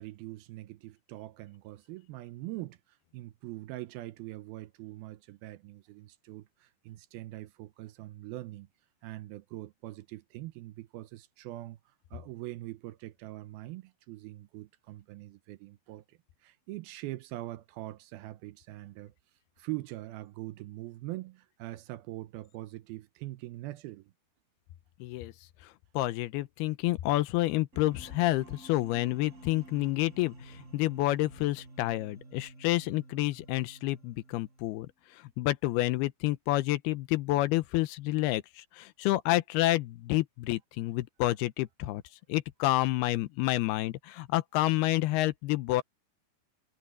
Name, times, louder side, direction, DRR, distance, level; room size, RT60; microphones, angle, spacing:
voice 1, 0.0-8.7 9.0-19.1 19.6-24.1, right 17 dB, 80° right, 2.5 m, -43 dB
voice 2, 25.0-25.3 25.6-34.9 35.1-42.0 42.3-45.8, left 17 dB, 85° left, 2.7 m, -29 dB
sound 1, 27.7-34.8, right 2 dB, 20° right, 3.6 m, -52 dB
omnidirectional pair, 4.6 m